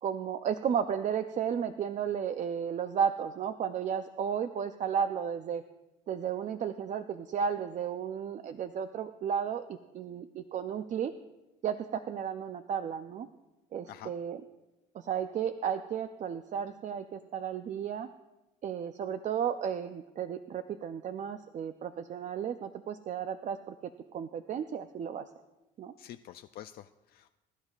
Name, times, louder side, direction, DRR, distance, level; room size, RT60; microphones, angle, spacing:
voice 1, 0.0-5.6 6.1-11.1 11.6-13.3 13.7-14.4 14.9-18.1 18.6-23.7 24.1-25.2 25.8-25.9, right 8 dB, 45° right, 9 dB, 0.5 m, -33 dB
voice 2, 26.0-27.3, left 12 dB, 65° left, 8 dB, 0.4 m, -47 dB
21.5 x 11.0 x 2.4 m, 1.0 s
cardioid pair, 110°, 17 cm